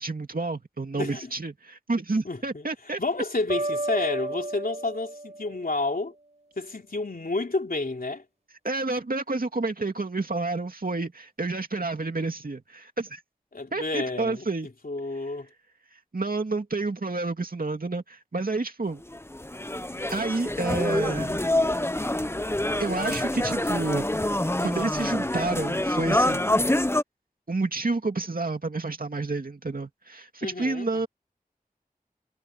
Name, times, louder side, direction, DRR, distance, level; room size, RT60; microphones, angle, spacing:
voice 1, 0.0-3.0 8.6-13.2 13.7-14.7 15.9-19.0 20.1-21.4 22.8-24.1 24.6-26.5 27.5-31.1, right 3 dB, 70° right, 2.4 m, -29 dB
voice 2, 0.9-1.3 2.2-2.7 3.0-6.1 6.6-8.2 13.5-14.5 14.8-15.5 30.4-31.1, left 3 dB, 70° left, 3.4 m, -30 dB
sound 1, 3.5-6.3, right 2 dB, 45° right, 5.5 m, -33 dB
sound 2, 19.0-27.0, left 1 dB, 15° left, 0.9 m, -26 dB
wide cardioid pair, 45°, 15 cm